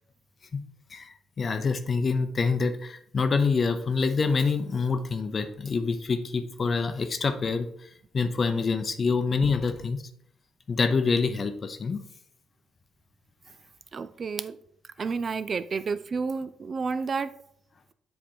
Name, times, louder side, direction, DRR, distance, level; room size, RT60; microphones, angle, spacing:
voice 1, 0.9-10.0 10.7-12.0 15.0-15.1, left 4 dB, 40° left, 8 dB, 0.6 m, -26 dB
voice 2, 13.9-14.6 15.0-17.3, right 5 dB, 45° right, 14 dB, 0.3 m, -30 dB
7.4 x 3.4 x 4.4 m, 0.70 s
cardioid pair, 90°, 0 cm